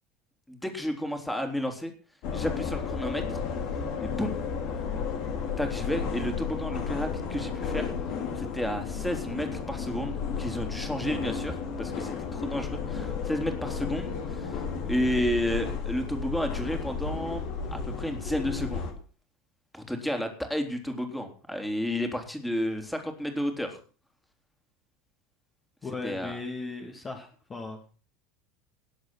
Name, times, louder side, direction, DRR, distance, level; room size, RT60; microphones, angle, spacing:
voice 1, 0.5-1.9 2.3-3.4 4.0-4.4 5.6-7.9 8.4-18.8 19.7-23.8 26.0-26.4, equal, 5° left, 5 dB, 3.5 m, -32 dB
sound 1, 2.2-18.9, left 6 dB, 50° left, 3.4 m, -33 dB
voice 2, 25.8-27.8, left 3 dB, 25° left, 2 dB, 2.7 m, -37 dB
19.5 x 8.1 x 6.1 m, 0.39 s
figure-of-eight pair, 75°, 0 cm